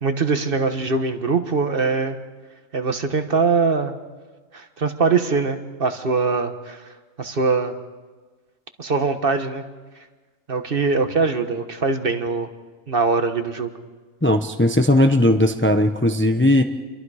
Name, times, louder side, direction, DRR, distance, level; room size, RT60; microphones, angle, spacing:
voice 1, 0.0-2.2 2.7-3.9 4.5-6.8 7.2-7.7 8.8-9.6 10.5-12.5 12.9-13.7, right 4 dB, 50° right, 7 dB, 1.5 m, -22 dB
voice 2, 14.2-16.6, left 1 dB, 10° left, 7 dB, 0.7 m, -17 dB
28.5 x 22.5 x 4.9 m, 1.3 s
omnidirectional pair, 1.3 m